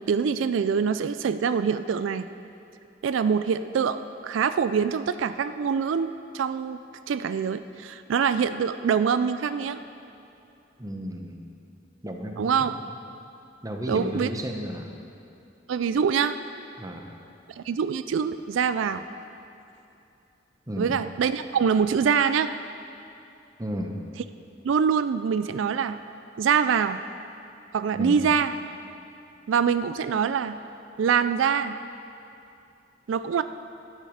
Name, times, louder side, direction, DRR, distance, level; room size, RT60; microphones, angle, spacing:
voice 1, 0.0-2.3 3.0-6.8 7.1-9.8 12.4-12.8 13.9-14.3 15.7-16.4 17.6-19.0 20.8-22.5 24.6-26.0 26.4-27.0 27.7-28.5 29.5-30.6 31.0-31.8 33.1-33.4, right 6 dB, 85° right, 12 dB, 0.4 m, -24 dB
voice 2, 10.8-11.4 12.0-12.5 13.6-14.9 16.8-17.1 20.7-21.0 23.6-24.0 27.9-28.2, equal, 20° right, 3 dB, 0.9 m, -33 dB
12.5 x 8.9 x 5.0 m, 2.7 s
head